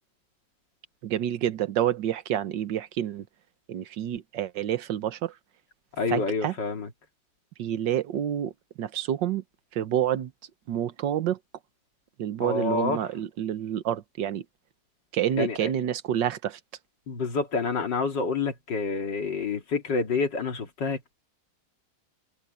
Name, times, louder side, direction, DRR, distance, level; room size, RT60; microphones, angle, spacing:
voice 1, 1.0-3.3 3.7-5.3 6.1-6.5 7.6-8.5 8.8-9.4 9.7-10.3 10.7-11.4 12.2-14.4 15.1-16.6, right 10 dB, 80° right, 1.6 m, -28 dB
voice 2, 6.0-6.9 12.4-13.0 15.4-15.7 17.1-21.1, left 4 dB, 75° left, 3.0 m, -28 dB
omnidirectional pair, 1.9 m